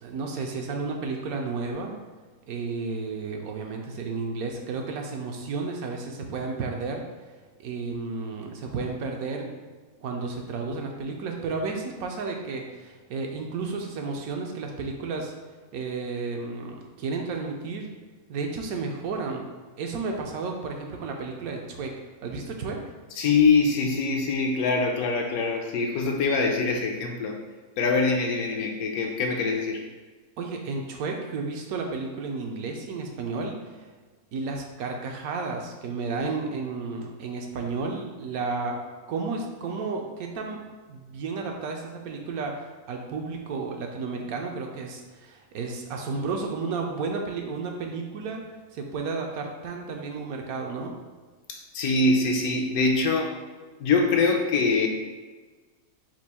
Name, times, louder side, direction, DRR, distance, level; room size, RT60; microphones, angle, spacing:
voice 1, 0.0-1.9 2.5-7.0 7.6-9.7 10.0-15.3 15.7-17.9 18.3-19.5 19.8-21.9 22.2-22.8 30.4-33.9 34.3-38.8 39.1-40.6 40.9-48.4 48.7-50.9, right 4 dB, 75° right, 2 dB, 1.0 m, -32 dB
voice 2, 23.2-27.4 27.8-29.8 51.5-53.3 53.8-54.9, left 4 dB, 75° left, 2 dB, 1.0 m, -24 dB
4.5 x 2.5 x 4.1 m, 1.4 s
omnidirectional pair, 1.6 m